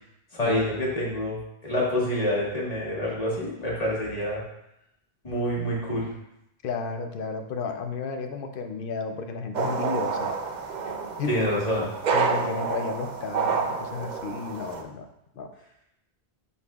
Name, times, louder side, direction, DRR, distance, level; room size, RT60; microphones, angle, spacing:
voice 1, 0.3-4.4 5.2-6.1 11.3-11.9, equal, 35° left, -5 dB, 1.6 m, -27 dB
voice 2, 6.6-10.3 11.2-11.5 12.1-15.1 15.4-15.5, left 4 dB, 60° left, 6 dB, 0.7 m, -32 dB
sound 1, 9.5-14.8, right 5 dB, 50° right, 0.6 m, -29 dB
9.7 x 4.1 x 2.3 m, 0.84 s
omnidirectional pair, 1.1 m